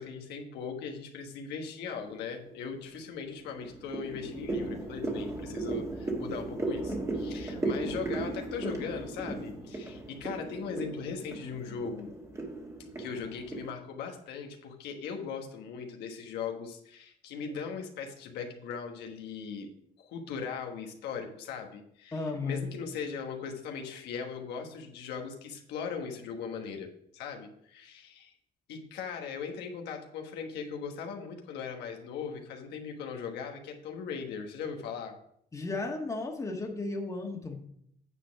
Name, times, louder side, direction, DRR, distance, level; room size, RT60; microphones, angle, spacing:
voice 1, 0.0-12.1 13.0-19.7 20.0-28.3 28.7-35.1, left 6 dB, 85° left, 3 dB, 1.3 m, -39 dB
sound 1, 2.0-2.5 3.0-13.7, right 2 dB, 15° right, 1.7 m, -36 dB
voice 2, 22.1-22.7 35.5-37.6, left 3 dB, 20° left, 1 dB, 1.5 m, -34 dB
9.1 x 4.2 x 5.9 m, 0.70 s
cardioid pair, 110°, 17 cm